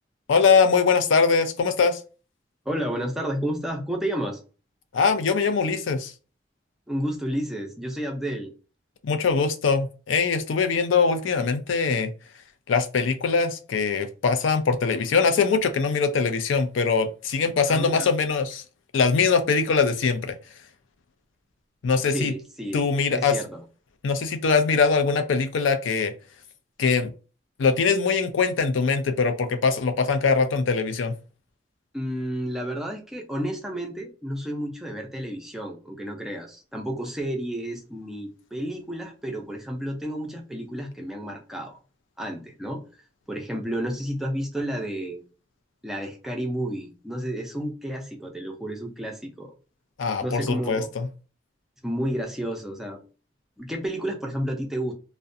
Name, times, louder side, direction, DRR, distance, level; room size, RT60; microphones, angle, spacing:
voice 1, 0.3-2.0 4.9-6.1 9.0-12.1 12.7-18.6 18.9-20.4 21.8-22.3 22.7-23.4 24.0-26.1 26.8-27.1 27.6-31.1 50.0-51.1, left 5 dB, 85° left, 0.4 m, -22 dB
voice 2, 2.7-4.4 6.9-8.5 17.7-18.1 22.1-23.6 31.9-41.8 42.2-42.8 43.3-45.2 45.8-49.5 50.2-50.9 51.8-53.0 53.6-54.9, equal, ahead, 0.4 m, -31 dB
2.4 x 2.1 x 2.6 m
head